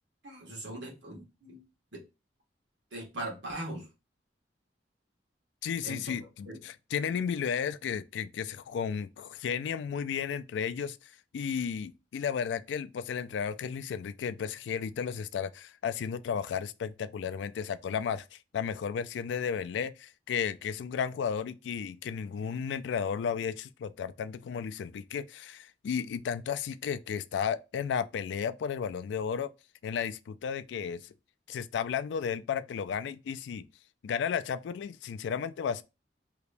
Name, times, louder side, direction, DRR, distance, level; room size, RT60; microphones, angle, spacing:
voice 1, 0.2-1.6 1.9-2.0 2.9-3.9 5.8-6.1 6.5-6.6, right 1 dB, 80° right, 1.2 m, -40 dB
voice 2, 5.6-29.5 29.8-31.1 31.5-33.7 34.0-35.8, left 7 dB, 80° left, 0.3 m, -33 dB
2.9 x 2.5 x 3.3 m
head